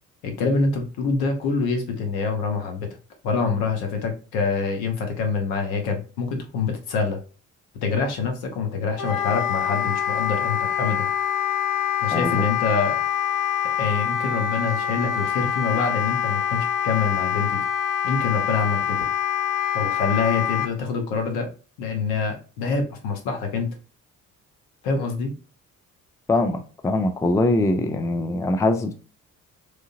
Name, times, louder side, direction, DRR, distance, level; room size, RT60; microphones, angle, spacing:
voice 1, 0.2-2.9 3.2-7.2 7.8-11.1 12.0-13.0 13.8-17.6 18.0-19.0 19.7-21.5 21.8-23.7 24.8-25.3, left 4 dB, 65° left, 1.1 m, -25 dB
Wind instrument woodwind instrument, 9.0-20.7, left 9 dB, 50° left, 0.7 m, -25 dB
voice 2, 12.1-12.4 26.3-28.9, left 2 dB, 10° left, 0.5 m, -22 dB
3.7 x 3.3 x 2.6 m
figure-of-eight pair, 45°, 41 cm